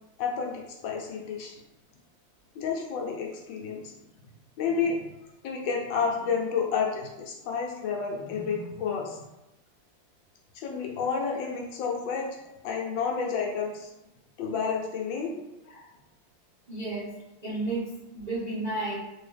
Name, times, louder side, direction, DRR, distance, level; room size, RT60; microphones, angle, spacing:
voice 1, 0.2-1.6 2.5-3.9 4.6-5.0 5.4-9.2 10.5-12.3 12.6-13.9 14.4-15.3 15.7-15.8, left 5 dB, 70° left, 0 dB, 1.4 m, -30 dB
voice 2, 16.7-19.0, right 2 dB, 70° right, -8 dB, 0.4 m, -32 dB
3.6 x 2.7 x 3.3 m, 0.95 s
omnidirectional pair, 2.3 m